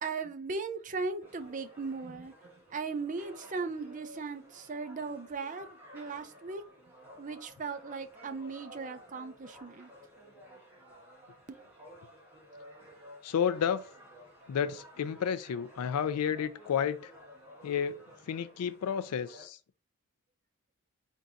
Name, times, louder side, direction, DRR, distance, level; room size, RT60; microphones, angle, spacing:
voice 1, 0.0-2.3 2.7-6.6 7.2-9.9 11.5-11.6, right 4 dB, 35° right, 0.5 m, -37 dB
sound 1, 1.2-19.5, equal, 10° right, 1.3 m, -54 dB
voice 2, 13.2-13.8 14.5-17.1 17.6-18.0 18.3-19.6, left 8 dB, 90° left, 0.4 m, -31 dB
4.5 x 2.7 x 3.7 m
head